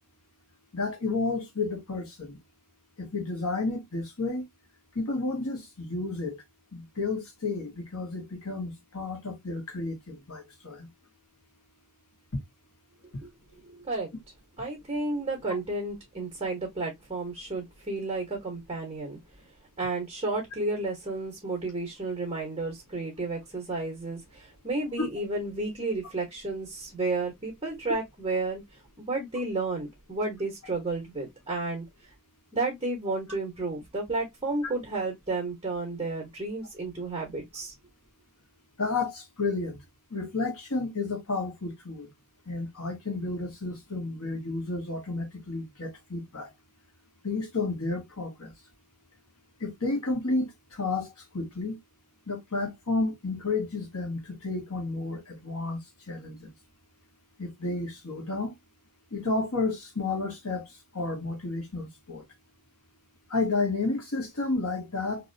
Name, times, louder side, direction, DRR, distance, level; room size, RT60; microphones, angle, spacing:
voice 1, 0.7-2.4 3.0-4.5 4.9-6.4 6.7-10.9 12.3-12.4 34.6-34.7 38.8-39.8 40.1-42.1 42.4-46.5 47.2-48.5 49.6-51.8 52.3-55.8 56.1-56.5 57.4-58.5 59.1-62.2 63.3-65.3, left 3 dB, 80° left, 1.5 m, -31 dB
voice 2, 14.6-19.2 19.8-28.6 29.1-31.8 32.5-37.7, right 2 dB, 25° right, 1.1 m, -32 dB
2.9 x 2.8 x 2.6 m
head